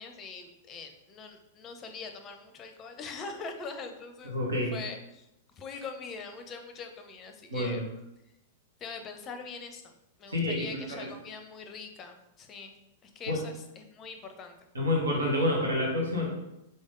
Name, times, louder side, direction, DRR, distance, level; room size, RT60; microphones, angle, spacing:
voice 1, 0.0-4.3 4.7-5.3 5.6-7.8 8.8-9.9 10.2-12.7 13.0-14.6, left 4 dB, 25° left, 6 dB, 0.6 m, -42 dB
voice 2, 4.2-4.8 7.5-7.8 10.3-11.1 13.3-13.4 14.7-16.3, left 1 dB, 75° right, -3 dB, 1.2 m, -28 dB
4.0 x 3.5 x 3.7 m, 0.88 s
figure-of-eight pair, 95°, 0 cm